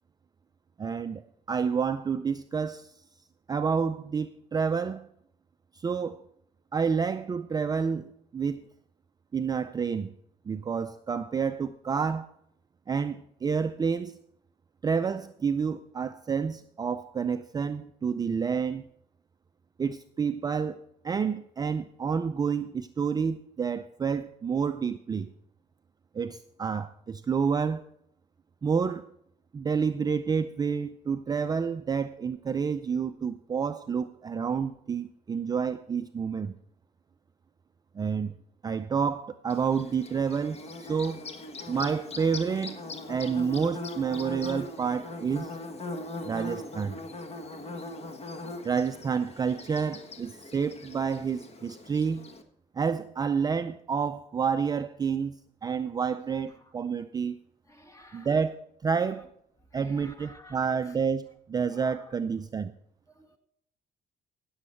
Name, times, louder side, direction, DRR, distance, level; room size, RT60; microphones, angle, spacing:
voice 1, 0.8-1.2 1.5-2.9 3.5-5.1 5.7-6.2 6.7-8.1 8.3-8.6 9.3-10.1 10.5-12.3 12.9-14.2 14.8-18.9 19.8-20.8 21.0-25.3 26.1-27.8 28.6-29.1 29.5-36.6 37.9-38.4 38.6-41.2 41.7-42.8 43.1-45.5 46.2-47.0 48.6-52.3 52.7-57.4 58.1-59.3 59.7-62.7, right 6 dB, 25° right, 0.4 m, -29 dB
Bird / Buzz, 39.5-52.4, left 2 dB, 40° left, 1.4 m, -40 dB
voice 2, 57.7-58.3 59.0-59.1 59.7-60.9 61.7-62.2 63.1-63.4, left 1 dB, 20° left, 1.9 m, -53 dB
16.0 x 7.2 x 4.4 m
cardioid pair, 110°, 17 cm